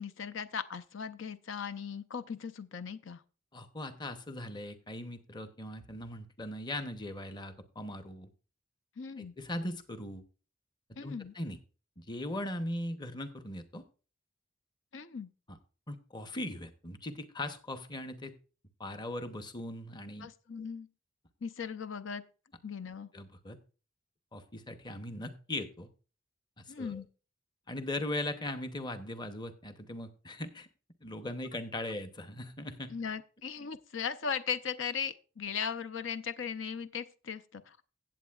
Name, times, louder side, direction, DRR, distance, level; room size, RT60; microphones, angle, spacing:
voice 1, 0.0-3.2 9.0-9.3 11.0-11.3 14.9-15.3 20.2-20.9 21.4-22.2 22.6-23.1 26.7-27.1 32.9-37.8, left 6 dB, 80° left, 0.6 m, -38 dB
voice 2, 3.5-8.3 9.2-10.2 10.9-11.6 12.0-13.8 15.5-15.6 15.9-18.3 18.8-20.3 23.1-23.6 24.3-25.9 26.6-27.0 27.7-30.7 31.0-33.0, left 1 dB, 25° left, 0.8 m, -39 dB
16.0 x 7.9 x 2.3 m
head